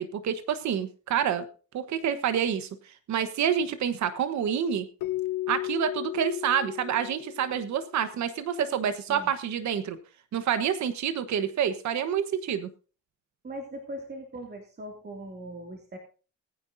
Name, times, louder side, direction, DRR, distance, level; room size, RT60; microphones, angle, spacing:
voice 1, 0.0-1.4 1.7-2.7 3.1-4.8 5.5-10.0 10.3-12.7, right 8 dB, 70° right, 10 dB, 1.3 m, -28 dB
Keyboard (musical), 5.0-7.8, left 15 dB, 85° left, 1.1 m, -34 dB
voice 2, 13.4-16.0, right 1 dB, 35° right, 1 dB, 2.6 m, -40 dB
20.5 x 9.8 x 2.7 m, 0.37 s
cardioid pair, 90°, 30 cm